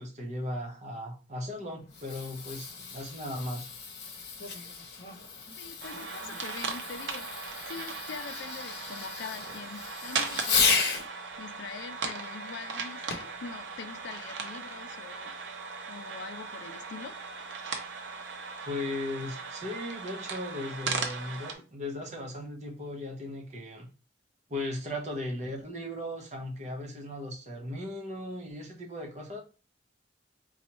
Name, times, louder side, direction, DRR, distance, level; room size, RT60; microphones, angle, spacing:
voice 1, 0.0-3.7 18.7-23.9 24.5-29.4, left 1 dB, 40° right, 0.9 m, -37 dB
Fireworks, 1.7-11.1 13.1-13.4 14.1-14.2, left 5 dB, 65° left, 0.8 m, -34 dB
voice 2, 5.6-15.5 15.9-17.2, left 5 dB, 85° left, 0.4 m, -44 dB
sound 1, 5.8-21.5, right 4 dB, 85° right, 0.7 m, -38 dB
4.2 x 2.3 x 2.9 m
head